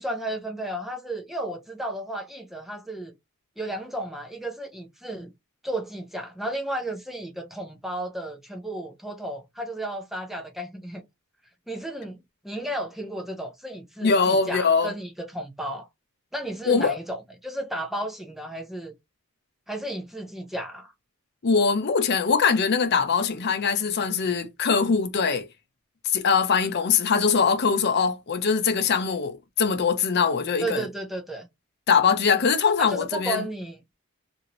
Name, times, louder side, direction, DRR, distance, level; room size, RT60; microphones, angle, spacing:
voice 1, 0.0-3.1 3.6-5.3 5.6-11.0 11.7-12.2 12.4-15.9 16.3-18.9 19.7-20.9 30.6-31.5 32.8-33.8, right 1 dB, ahead, 0.4 m, -33 dB
voice 2, 14.0-14.9 16.7-17.0 21.4-25.5 26.0-30.8 31.9-33.5, left 5 dB, 50° left, 0.5 m, -22 dB
2.7 x 2.6 x 2.9 m
head